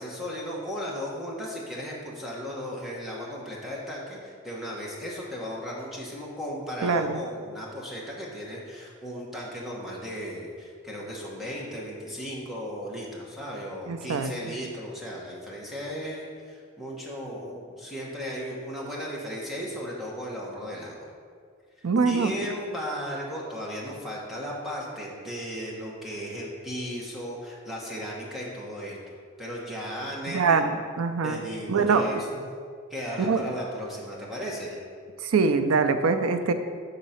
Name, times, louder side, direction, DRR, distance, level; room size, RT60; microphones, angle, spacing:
voice 1, 0.0-21.1 21.8-29.0 29.4-30.6 31.2-32.5 32.9-34.8, equal, ahead, -5 dB, 1.1 m, -36 dB
voice 2, 6.8-7.2 13.9-14.3 21.8-22.3 30.3-30.6 31.0-31.4 31.7-32.2 33.2-33.4 35.2-36.5, right 4 dB, 80° right, 9 dB, 0.5 m, -23 dB
7.3 x 3.9 x 5.6 m, 2.1 s
head